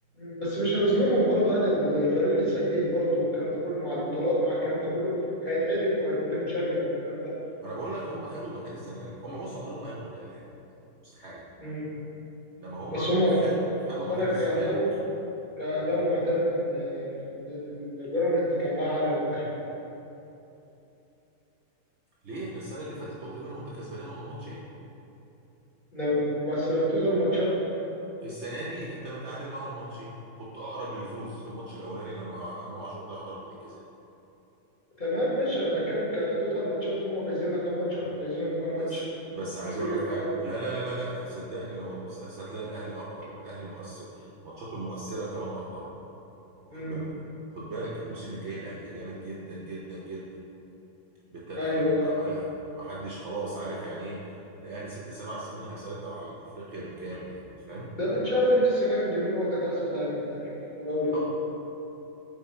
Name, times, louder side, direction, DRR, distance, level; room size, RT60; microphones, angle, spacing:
voice 1, 0.2-7.3 11.6-11.9 12.9-13.4 14.1-14.9 15.6-19.5 25.9-27.5 35.0-39.0 39.9-40.3 46.7-47.0 51.6-52.1 58.0-60.4 60.7-61.2, equal, 30° left, -9 dB, 1.3 m, -27 dB
voice 2, 7.6-10.4 11.1-11.4 12.6-13.1 13.4-14.7 22.2-24.6 28.2-33.8 38.8-39.0 39.3-45.9 46.7-47.1 47.5-50.2 51.3-57.9 61.1-61.2, right 2 dB, 55° right, -6 dB, 0.8 m, -37 dB
5.7 x 4.0 x 4.2 m, 2.9 s
omnidirectional pair, 1.7 m